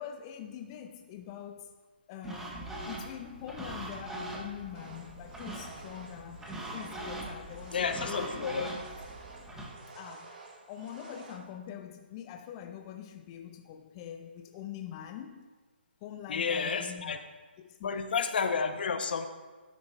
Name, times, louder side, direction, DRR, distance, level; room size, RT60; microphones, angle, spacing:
voice 1, 0.0-1.7 2.1-6.4 6.7-8.3 9.9-10.3 10.7-15.5 16.0-17.3 17.6-18.1, left 9 dB, 25° left, 0.4 m, -44 dB
sound 1, 2.2-9.7, right 1 dB, 5° right, 1.0 m, -42 dB
sound 2, 4.7-11.3, right 4 dB, 60° right, 2.1 m, -50 dB
voice 2, 7.7-8.7 16.3-17.2 17.8-19.3, left 5 dB, 60° left, 0.7 m, -31 dB
13.0 x 7.2 x 2.2 m
figure-of-eight pair, 145°, 6 cm